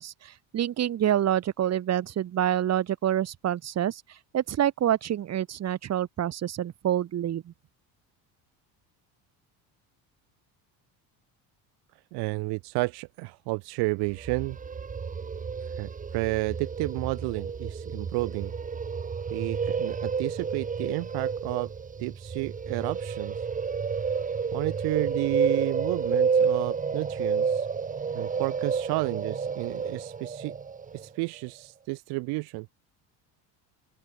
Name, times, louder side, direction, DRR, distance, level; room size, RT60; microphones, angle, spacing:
voice 1, 0.0-7.5, right 11 dB, 40° right, 7.6 m, -27 dB
voice 2, 12.1-14.6 15.8-18.5 19.3-21.7 22.0-23.4 24.5-27.7 28.1-30.5 30.9-32.7, right 26 dB, 85° right, 1.8 m, -31 dB
sound 1, 14.1-31.1, right 5 dB, 20° right, 2.6 m, -30 dB
open air
cardioid pair, 155°, 38 cm